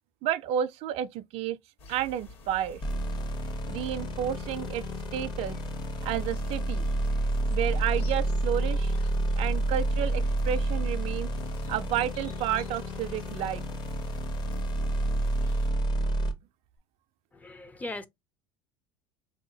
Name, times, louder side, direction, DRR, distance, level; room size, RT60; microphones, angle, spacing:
voice 1, 0.2-1.6 1.9-2.8 3.7-4.8 5.1-5.6 6.0-6.9 7.5-8.9 9.4-11.3 11.7-13.6, right 11 dB, 55° right, 0.4 m, -31 dB
sound 1, 1.8-15.7, left 1 dB, 50° left, 1.4 m, -48 dB
sound 2, 2.8-16.3, right 1 dB, 35° left, 0.8 m, -29 dB
voice 2, 17.3-18.1, left 2 dB, 10° left, 0.5 m, -38 dB
3.6 x 2.7 x 2.6 m
hypercardioid pair, 85°, 13 cm